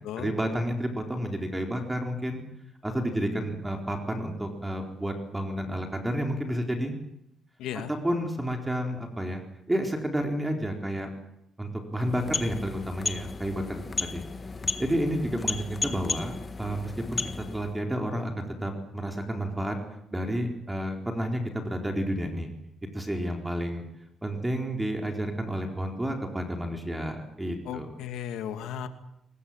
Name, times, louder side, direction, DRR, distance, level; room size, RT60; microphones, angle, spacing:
voice 1, 0.2-2.4 2.8-6.9 7.9-9.4 9.7-11.1 11.6-14.3 14.8-17.2 17.5-19.8 20.1-22.5 22.9-23.8 24.2-27.9, equal, 10° right, 3 dB, 4.3 m, -30 dB
voice 2, 7.6-7.9 27.7-28.9, left 9 dB, 85° left, 8 dB, 2.4 m, -35 dB
sound 1, 12.0-17.8, left 4 dB, 30° left, 1.7 m, -34 dB
24.0 x 22.0 x 8.9 m, 0.82 s
cardioid pair, 90°, 0 cm